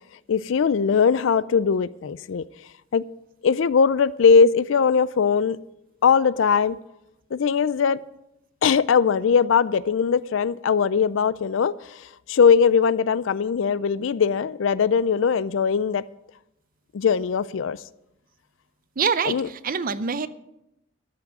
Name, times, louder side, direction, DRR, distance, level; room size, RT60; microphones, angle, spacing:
voice 1, 0.3-2.5 2.9-3.0 3.4-5.6 6.0-6.8 7.3-8.0 8.6-16.0 16.9-17.8 19.3-19.5, left 6 dB, 70° left, 19 dB, 0.4 m, -20 dB
voice 2, 19.0-20.3, right 6 dB, 45° right, 14 dB, 0.6 m, -25 dB
13.0 x 6.1 x 9.0 m, 0.87 s
head